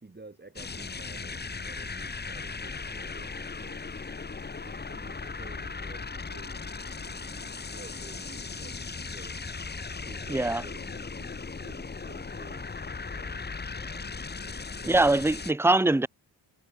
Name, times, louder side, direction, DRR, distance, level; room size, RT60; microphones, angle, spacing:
voice 1, 0.0-3.8 4.3-6.7 7.1-9.4 10.0-12.7 13.1-15.1, right 3 dB, 25° right, 3.7 m, -51 dB
sound 1, 0.6-15.5, left 4 dB, 20° left, 1.1 m, -38 dB
voice 2, 10.3-10.6 14.9-16.1, right 2 dB, 5° right, 1.0 m, -22 dB
cardioid pair, 75°, 44 cm